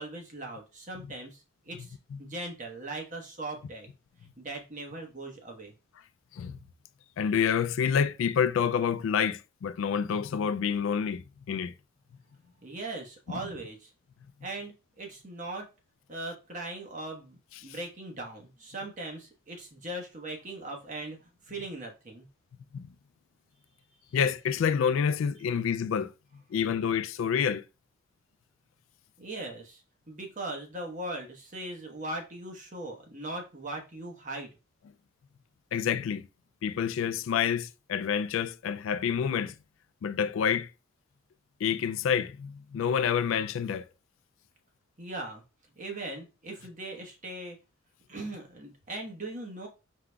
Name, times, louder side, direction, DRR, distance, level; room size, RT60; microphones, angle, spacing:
voice 1, 0.0-3.9 4.4-5.7 12.6-13.9 14.4-15.7 16.1-22.3 29.2-34.5 45.0-45.4 45.8-47.6 48.1-49.7, right 2 dB, 40° right, 1.1 m, -39 dB
voice 2, 7.2-11.7 13.3-13.4 17.6-17.8 22.7-22.9 24.1-26.1 26.5-27.6 35.7-36.3 36.6-39.5 40.0-40.7 41.6-43.9, left 7 dB, 70° left, 0.3 m, -28 dB
4.6 x 3.7 x 2.2 m
head